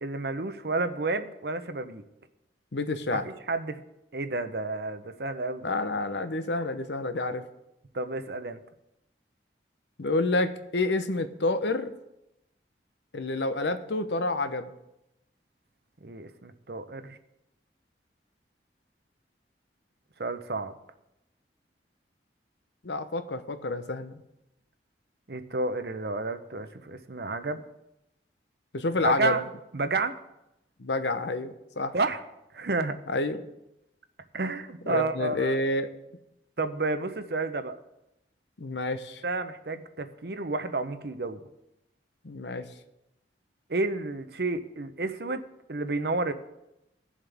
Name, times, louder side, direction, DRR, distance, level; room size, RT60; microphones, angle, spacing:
voice 1, 0.0-2.0 3.1-3.2 3.5-3.8 4.1-5.7 7.9-8.6 16.0-17.2 20.2-20.7 25.3-27.6 29.0-29.5 29.7-30.2 31.9-32.2 32.5-33.0 34.3-35.6 36.6-37.7 39.2-41.4 43.7-45.4 45.7-46.3, right 3 dB, 60° right, 10 dB, 0.8 m, -30 dB
voice 2, 2.7-3.3 5.6-7.4 10.0-11.9 13.1-14.7 22.8-24.2 28.7-29.4 30.8-31.9 33.1-33.4 34.9-35.9 38.6-39.2 42.2-42.7, left 2 dB, 80° left, 9 dB, 0.9 m, -29 dB
18.0 x 7.3 x 3.5 m, 0.89 s
head